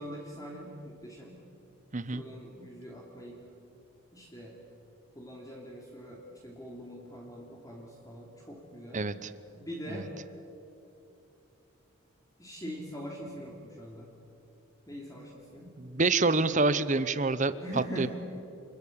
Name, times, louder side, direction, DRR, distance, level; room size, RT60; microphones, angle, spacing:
voice 1, 0.0-1.4 2.1-3.4 4.1-4.5 5.1-9.1 9.6-10.1 12.4-14.1 14.9-15.7 17.6-18.1, equal, 15° left, -2 dB, 3.1 m, -43 dB
voice 2, 8.9-9.3 9.9-10.1 15.8-18.1, right 3 dB, 35° right, 14 dB, 0.9 m, -27 dB
29.0 x 21.5 x 8.8 m, 2.8 s
head